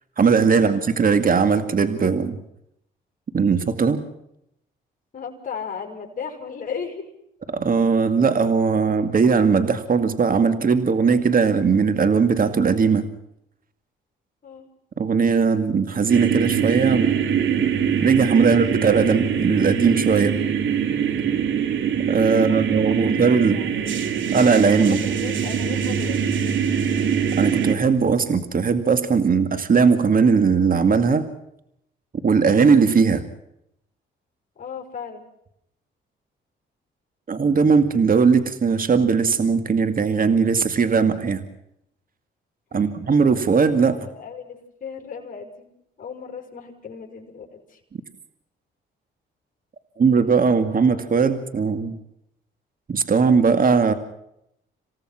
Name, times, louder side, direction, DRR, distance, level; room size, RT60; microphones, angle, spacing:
voice 1, 0.2-2.4 3.3-4.0 7.5-13.1 15.0-17.1 18.0-20.4 22.1-23.6 24.3-25.0 27.4-31.3 32.2-33.3 37.3-41.5 42.7-44.0 50.0-52.0 52.9-53.9, right 5 dB, 45° right, 9 dB, 2.2 m, -19 dB
voice 2, 5.1-7.1 14.4-14.7 22.5-24.2 24.8-26.2 34.6-35.2 42.7-43.1 43.9-45.7 46.0-47.8, left 6 dB, 40° left, 1 dB, 6.4 m, -36 dB
sound 1, 16.1-27.8, right 7 dB, 70° right, 3.4 m, -23 dB
27.5 x 17.5 x 6.1 m, 0.78 s
cardioid pair, 75°, 20 cm